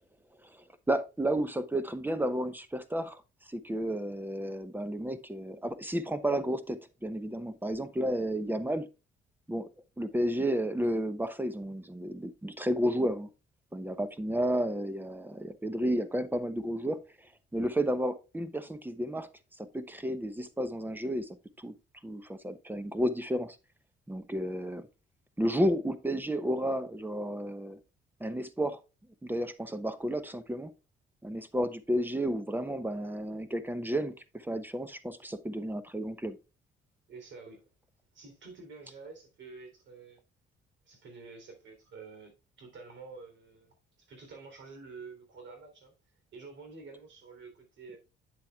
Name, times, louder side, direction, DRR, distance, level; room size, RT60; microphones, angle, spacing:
voice 1, 0.4-3.2 3.5-8.9 9.5-9.7 10.0-13.3 13.7-17.0 17.5-19.3 19.6-21.7 22.0-23.6 24.1-24.9 25.4-27.8 28.2-28.8 29.2-30.7 31.2-34.1 34.4-36.4, right 1 dB, 10° right, 0.9 m, -32 dB
voice 2, 37.1-37.7 38.1-40.2 40.9-42.3 42.6-45.9 46.3-48.0, right 4 dB, 70° right, 3.6 m, -49 dB
8.8 x 7.5 x 2.4 m
cardioid pair, 90°, 20 cm